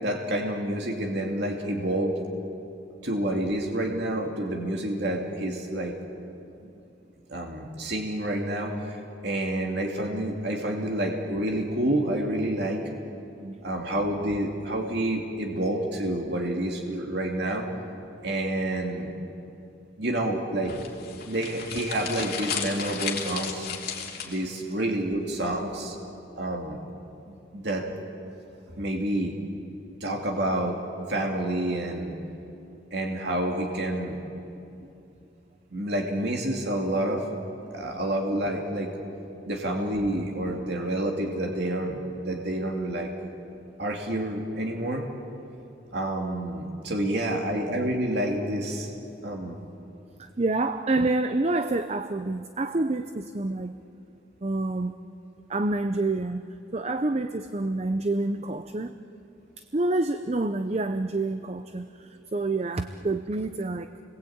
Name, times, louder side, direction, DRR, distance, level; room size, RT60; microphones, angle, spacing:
voice 1, 0.0-2.2 3.0-5.9 7.3-9.0 9.2-12.8 13.6-17.6 18.2-19.1 20.0-20.7 21.3-23.7 24.2-25.9 26.4-26.8 27.5-27.8 28.8-29.3 30.0-30.8 31.1-32.1 32.9-34.2 35.7-37.2 37.7-38.9 39.5-42.0 42.3-43.1 43.8-45.1 45.9-48.9 49.2-49.5, right 1 dB, 55° right, 1 dB, 2.5 m, -28 dB
sound 1, 20.6-24.6, left 6 dB, 50° left, 3.0 m, -34 dB
voice 2, 50.2-53.7 54.4-54.9 55.5-56.4 56.7-58.9 59.7-63.9, right 2 dB, 35° right, 9 dB, 0.6 m, -28 dB
30.0 x 21.0 x 8.7 m, 2.7 s
head